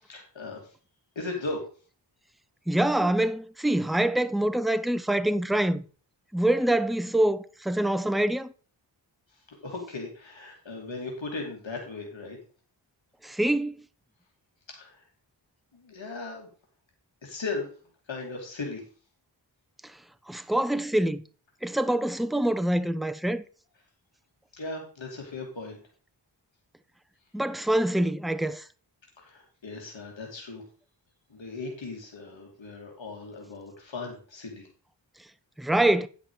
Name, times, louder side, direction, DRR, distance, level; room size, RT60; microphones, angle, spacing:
voice 1, 0.0-0.6 1.2-1.6 9.6-12.4 14.7-15.0 15.7-16.5 17.2-17.7 18.1-18.8 24.6-25.8 29.2-30.6 31.3-34.7, left 3 dB, 80° left, 2.7 m, -37 dB
voice 2, 2.7-5.8 6.3-8.5 13.2-13.7 20.3-21.2 21.6-23.4 27.3-28.7 35.6-36.1, right 1 dB, ahead, 0.6 m, -25 dB
10.5 x 6.0 x 4.9 m
wide cardioid pair, 60°, 45 cm